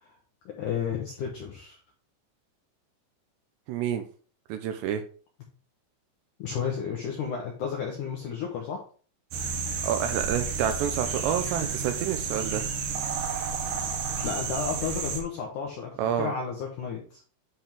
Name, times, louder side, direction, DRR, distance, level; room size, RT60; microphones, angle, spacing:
voice 1, 0.5-1.8 6.4-8.8 14.2-17.2, left 6 dB, 75° left, 0 dB, 1.9 m, -32 dB
voice 2, 3.7-4.0 4.5-5.0 9.8-12.7 16.0-16.3, right 9 dB, 80° right, 8 dB, 2.6 m, -28 dB
sound 1, 9.3-15.2, right 5 dB, 65° right, 2.3 m, -31 dB
10.0 x 4.5 x 3.6 m, 0.41 s
omnidirectional pair, 5.3 m